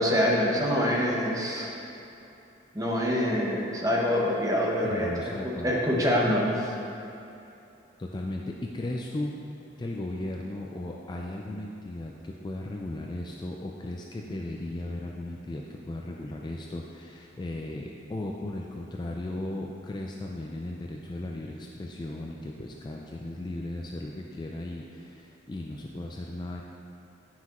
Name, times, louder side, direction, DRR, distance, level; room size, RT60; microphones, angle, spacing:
voice 1, 0.0-1.7 2.7-6.7, equal, 15° right, -3 dB, 0.9 m, -25 dB
voice 2, 4.8-5.8 8.0-9.3 9.8-26.6, left 1 dB, 20° left, -1 dB, 0.3 m, -36 dB
9.5 x 5.8 x 3.0 m, 2.7 s
head